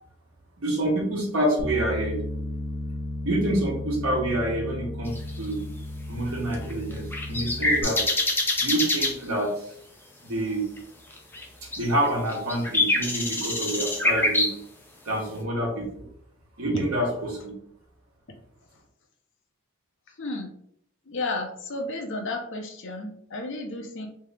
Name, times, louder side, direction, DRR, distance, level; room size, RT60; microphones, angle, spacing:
voice 1, 0.6-2.2 3.2-5.6 6.1-8.0 8.6-9.7 10.2-10.7 11.8-14.5 15.0-16.1 16.6-17.5, right 1 dB, 70° right, -1 dB, 1.2 m, -27 dB
Bass guitar, 1.6-7.8, left 1 dB, 40° left, 1.3 m, -34 dB
sound 1, 5.1-5.4 6.5-9.1 10.8-10.9 11.1-11.4 11.7-14.5, left 2 dB, 10° left, 0.5 m, -25 dB
voice 2, 20.2-20.5 21.1-24.1, left 2 dB, 55° left, 2 dB, 0.7 m, -32 dB
3.3 x 2.8 x 3.3 m, 0.69 s
head